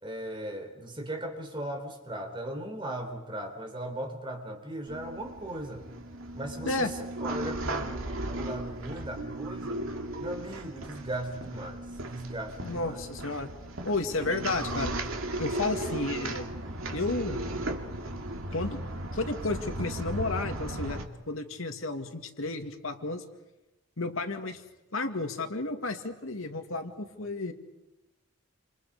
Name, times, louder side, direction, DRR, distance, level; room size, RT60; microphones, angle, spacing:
voice 1, 0.0-5.9 6.3-9.8 10.2-13.0 14.0-14.2, right 1 dB, 25° right, 4 dB, 3.9 m, -38 dB
sound 1, 4.9-21.0, right 1 dB, 80° right, 2.5 m, -36 dB
voice 2, 12.6-13.5 13.8-14.9 15.4-16.5 16.9-17.4 18.5-18.8 19.1-21.0 21.3-23.2 24.0-24.6 24.9-27.5, left 2 dB, 80° left, 5 dB, 2.4 m, -32 dB
28.5 x 27.5 x 5.1 m, 0.98 s
head